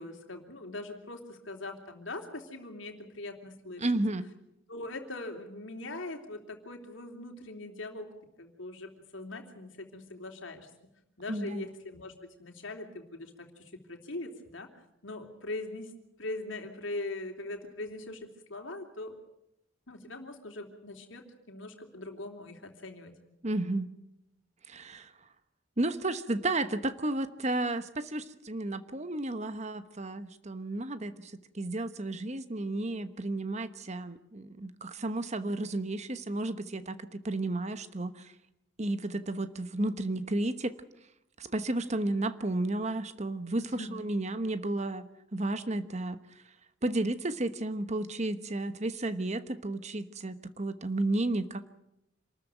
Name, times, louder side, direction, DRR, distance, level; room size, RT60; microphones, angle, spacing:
voice 1, 0.0-3.9 4.7-8.1 8.4-10.7 11.2-14.7 15.0-15.9 16.2-19.1 19.9-23.1 43.6-44.0, left 2 dB, 75° left, 3 dB, 3.2 m, -41 dB
voice 2, 3.8-4.3 11.3-11.7 23.4-23.9 24.7-25.1 25.8-38.3 38.8-40.8 41.4-46.4 46.8-51.7, right 2 dB, 35° right, 12 dB, 1.1 m, -32 dB
27.0 x 13.5 x 9.1 m, 0.84 s
head